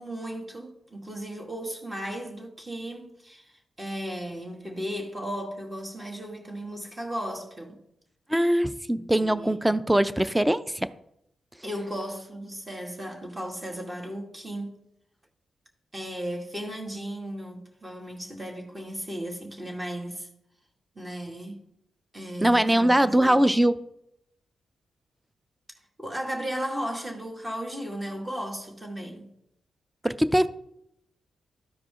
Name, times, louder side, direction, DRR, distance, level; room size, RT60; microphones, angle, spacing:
voice 1, 0.0-7.8 8.9-9.8 11.6-14.7 15.9-20.3 21.0-21.6 22.1-23.6 26.0-29.3, equal, 25° right, 2.3 m, -35 dB
voice 2, 8.3-10.9 22.4-23.7 30.0-30.5, right 1 dB, 10° right, 0.5 m, -22 dB
13.0 x 4.8 x 3.7 m
cardioid pair, 55°, 0 cm